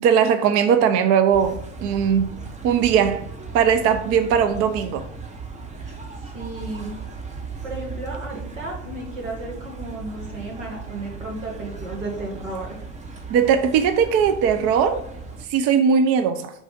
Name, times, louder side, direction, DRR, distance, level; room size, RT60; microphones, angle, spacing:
voice 1, 0.0-2.3 2.6-3.2 3.5-5.0 13.3-15.0 15.5-16.5, right 7 dB, 40° right, 0.5 m, -19 dB
sound 1, 1.3-15.4, right 4 dB, 20° right, 0.9 m, -37 dB
voice 2, 5.8-7.0 7.6-12.8, right 2 dB, 80° right, 2.0 m, -34 dB
4.7 x 3.9 x 5.0 m
hypercardioid pair, 75°, 38 cm